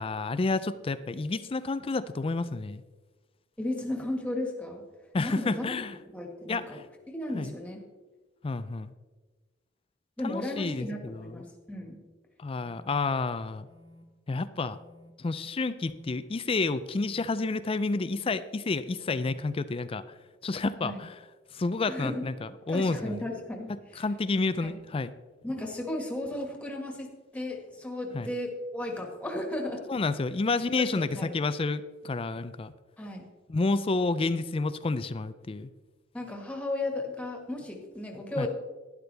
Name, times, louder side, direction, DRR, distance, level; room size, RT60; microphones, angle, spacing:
voice 1, 0.0-2.8 5.1-5.9 6.5-6.8 7.3-7.5 8.4-8.9 10.2-11.4 12.4-13.7 14.3-14.8 15.2-20.0 20.4-21.1 21.5-23.3 24.0-25.1 28.1-28.3 29.9-32.7 33.5-35.7 38.4-38.5, left 3 dB, 30° left, 14 dB, 0.4 m, -30 dB
voice 2, 3.6-4.8 5.2-5.8 6.1-6.8 7.1-7.8 10.2-12.0 20.8-21.0 21.9-22.3 22.7-24.0 24.6-24.7 25.4-27.1 27.3-29.8 30.8-31.3 33.0-33.3 36.1-38.5, left 1 dB, 5° left, 1 dB, 1.8 m, -35 dB
sound 1, 11.9-12.0 12.6-13.0 13.6-14.0 14.7-15.1 15.8-16.2 16.8-17.2 17.9-18.3 19.0-19.4, left 1 dB, 75° right, 2.1 m, -55 dB
12.0 x 11.0 x 3.4 m, 1.3 s
head